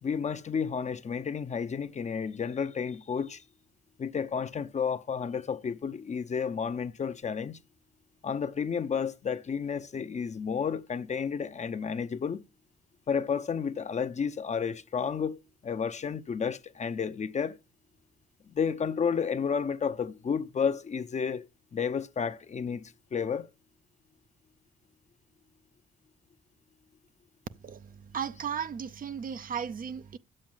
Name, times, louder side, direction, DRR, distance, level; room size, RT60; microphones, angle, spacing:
voice 1, 0.0-3.4 4.0-7.6 8.2-12.4 13.1-17.6 18.5-21.5 21.7-23.5, left 6 dB, 35° left, 0.6 m, -31 dB
voice 2, 27.6-30.2, right 7 dB, 45° right, 0.6 m, -36 dB
8.5 x 7.7 x 7.2 m
cardioid pair, 90°, 20 cm